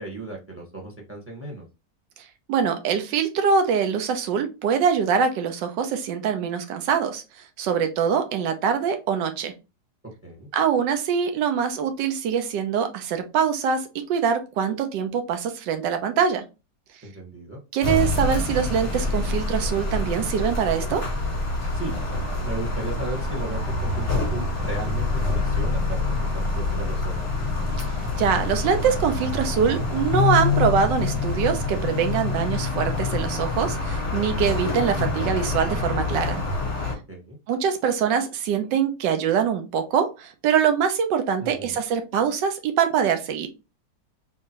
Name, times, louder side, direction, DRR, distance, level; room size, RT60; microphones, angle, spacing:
voice 1, 0.0-1.7 10.2-10.5 17.0-17.6 21.7-21.9 22.4-26.0 26.3-27.3 37.1-37.4 41.4-41.8, right 2 dB, 10° right, 0 dB, 0.7 m, -35 dB
voice 2, 2.5-7.2 7.6-9.5 10.5-16.4 17.7-21.0 27.8-27.9 28.2-36.4 37.5-43.5, right 7 dB, 75° right, 6 dB, 1.3 m, -23 dB
sound 1, 17.8-36.9, left 3 dB, 20° left, 1.1 m, -26 dB
3.9 x 3.1 x 2.8 m, 0.27 s
omnidirectional pair, 2.0 m